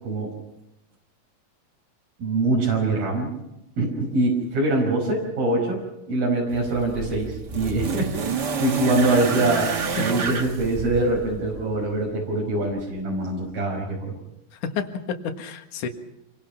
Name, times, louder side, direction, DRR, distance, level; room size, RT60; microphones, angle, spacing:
voice 1, 0.0-0.3 2.2-3.3 3.8-9.7 10.0-14.2, right 2 dB, 80° right, -2 dB, 7.3 m, -24 dB
sound 1, 6.5-11.7 12.8-12.9, right 5 dB, 55° right, 1.2 m, -29 dB
voice 2, 14.5-15.9, left 6 dB, 60° left, 5 dB, 3.0 m, -30 dB
27.5 x 23.0 x 6.0 m, 0.89 s
omnidirectional pair, 4.2 m